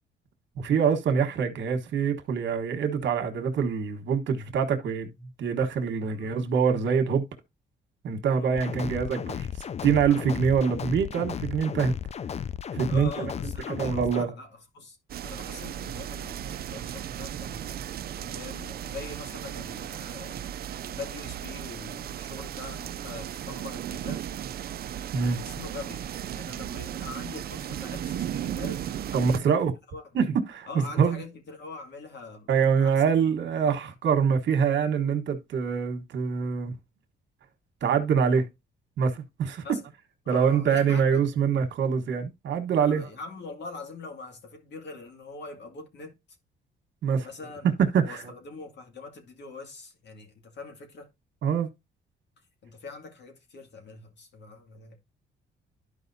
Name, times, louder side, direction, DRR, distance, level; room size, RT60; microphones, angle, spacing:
voice 1, 0.6-7.3 8.0-9.5 9.8-11.9 12.7-13.3 13.7-14.3 25.1-25.4 29.1-29.7 30.1-31.2 32.5-36.7 37.8-38.4 39.0-39.6 40.3-43.1 47.0-47.3 47.9-48.2 51.4-51.7, right 6 dB, 65° right, 1.4 m, -25 dB
voice 2, 8.3-8.8 12.9-15.0 15.2-17.8 18.2-20.5 20.8-24.3 25.3-29.6 29.9-30.0 30.7-32.5 32.8-32.9 33.5-33.8 39.6-39.9 40.2-41.3 42.8-46.1 47.2-47.7 48.0-51.1 52.6-55.0, left 4 dB, 60° left, 2.3 m, -43 dB
sound 1, 8.6-14.2, left 8 dB, 35° left, 0.4 m, -34 dB
sound 2, 15.1-29.4, right 10 dB, 50° right, 0.4 m, -36 dB
12.0 x 5.0 x 2.7 m
cardioid pair, 90°, 20 cm